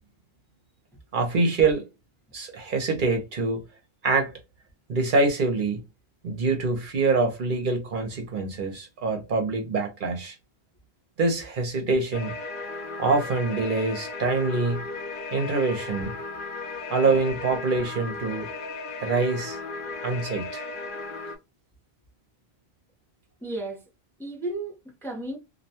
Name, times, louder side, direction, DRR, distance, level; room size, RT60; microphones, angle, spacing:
voice 1, 1.1-1.9 2.3-3.6 4.0-4.3 4.9-5.8 6.2-10.4 11.2-12.3 13.0-14.8 15.3-16.1 16.9-18.5 19.0-19.6 20.0-20.6, right 3 dB, 60° right, 0.8 m, -25 dB
sound 1, 12.1-21.4, left 3 dB, 60° left, 0.7 m, -36 dB
voice 2, 23.4-23.8 24.2-25.4, right 2 dB, 5° left, 0.6 m, -34 dB
2.5 x 2.1 x 2.7 m
omnidirectional pair, 1.0 m